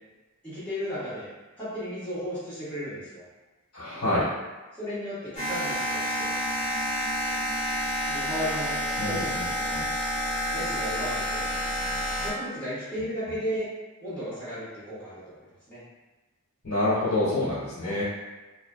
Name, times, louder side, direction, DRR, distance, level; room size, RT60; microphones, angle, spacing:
voice 1, 0.4-1.3 1.6-3.2 4.8-6.4 8.1-9.7 10.5-11.4 12.2-13.7 14.0-15.8 17.8-18.0, equal, 5° left, -13 dB, 1.2 m, -35 dB
voice 2, 3.7-4.3 9.0-9.9 16.6-18.0, left 1 dB, 80° left, -10 dB, 0.9 m, -27 dB
sound 1, 5.3-12.3, equal, 30° left, 0.9 m, -29 dB
2.5 x 2.1 x 2.3 m, 1.2 s
head